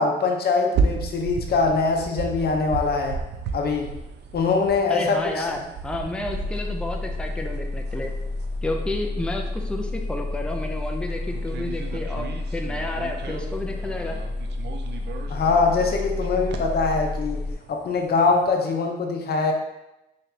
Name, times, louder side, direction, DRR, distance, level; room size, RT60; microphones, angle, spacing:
voice 1, 0.0-3.2 3.5-3.9 4.3-5.5 15.3-17.4 17.7-19.5, left 4 dB, 50° left, 2 dB, 0.8 m, -23 dB
sound 1, 0.7-18.5, right 5 dB, 60° right, 0.5 m, -35 dB
voice 2, 4.9-8.1 8.6-14.2, left 2 dB, 5° left, 3 dB, 0.5 m, -31 dB
sound 2, 6.3-17.5, left 2 dB, 30° left, 1.5 m, -30 dB
4.1 x 3.2 x 2.7 m, 0.92 s
cardioid pair, 90°, 20 cm